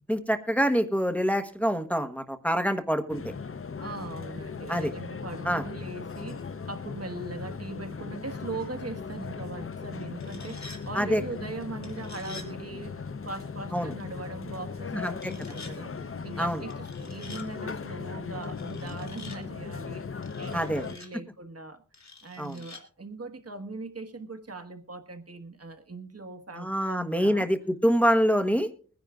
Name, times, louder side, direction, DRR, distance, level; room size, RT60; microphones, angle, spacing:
voice 1, 0.1-3.2 4.7-4.9 5.4-5.6 10.9-11.2 13.7-13.9 14.9-15.3 16.4-16.6 20.5-20.8 22.4-22.6 26.5-28.7, equal, 5° left, 1.1 m, -26 dB
sound 1, 3.1-21.0, left 5 dB, 45° left, 0.7 m, -38 dB
voice 2, 3.8-21.8 22.2-27.5, right 3 dB, 50° right, 1.4 m, -40 dB
sound 2, 10.0-10.8 11.8-12.5 15.1-15.7 16.7-17.5 18.4-19.4 20.2-21.1 21.9-22.8, left 3 dB, 65° left, 2.8 m, -47 dB
22.5 x 10.5 x 2.4 m
wide cardioid pair, 65°, 30 cm